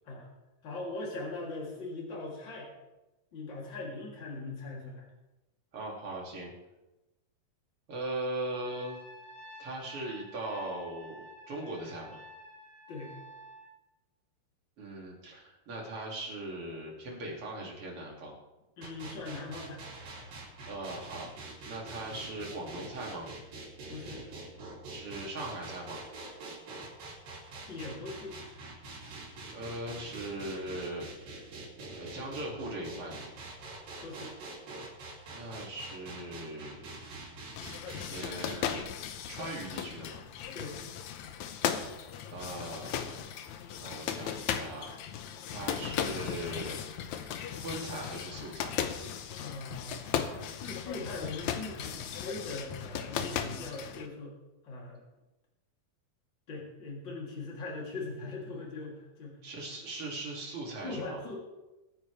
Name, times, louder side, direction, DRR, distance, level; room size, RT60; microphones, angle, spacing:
voice 1, 0.6-2.7 3.3-5.1 12.9-13.1 18.8-19.8 23.9-24.2 27.7-28.4 34.0-34.3 40.5-40.8 49.4-50.0 50.5-54.3 54.6-55.0 56.5-59.4 60.8-61.4, left 3 dB, 30° left, -3 dB, 3.7 m, -40 dB
voice 2, 5.7-6.5 7.9-9.0 9.6-12.2 14.8-18.3 20.7-21.3 21.7-23.3 24.9-26.0 29.5-31.4 31.9-33.3 35.3-37.0 38.0-38.9 39.3-40.2 42.3-43.2 43.8-44.9 45.5-46.8 47.6-48.7 59.4-61.2, right 1 dB, 40° right, -2 dB, 3.5 m, -39 dB
Trumpet, 8.6-13.7, equal, 90° left, 6.8 m, -50 dB
sound 1, 18.8-38.8, right 2 dB, 75° right, 4.6 m, -45 dB
sound 2, 37.5-54.1, left 9 dB, 70° left, 1.9 m, -37 dB
23.5 x 9.5 x 3.5 m, 1.0 s
omnidirectional pair, 4.0 m